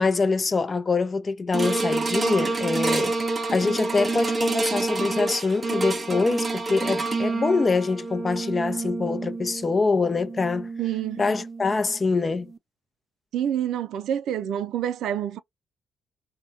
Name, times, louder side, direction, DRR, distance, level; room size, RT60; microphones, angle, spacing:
voice 1, 0.0-3.1 3.5-10.7 11.2-12.5, left 4 dB, 30° left, 0.6 m, -24 dB
sound 1, 1.5-11.9 12.5-12.6, right 3 dB, 30° right, 0.6 m, -28 dB
voice 2, 10.8-11.2 13.3-15.4, right 10 dB, 80° right, 0.4 m, -27 dB
3.4 x 2.2 x 2.7 m
cardioid pair, 90°, 0 cm